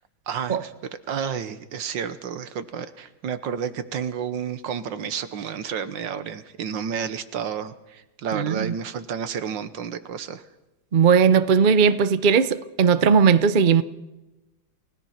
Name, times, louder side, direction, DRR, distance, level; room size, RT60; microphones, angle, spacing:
voice 1, 0.3-0.7 1.1-10.4, right 7 dB, 80° right, 1.8 m, -31 dB
voice 2, 8.3-8.7 10.9-13.8, right 6 dB, 50° right, 0.6 m, -18 dB
30.0 x 17.0 x 5.8 m
omnidirectional pair, 2.0 m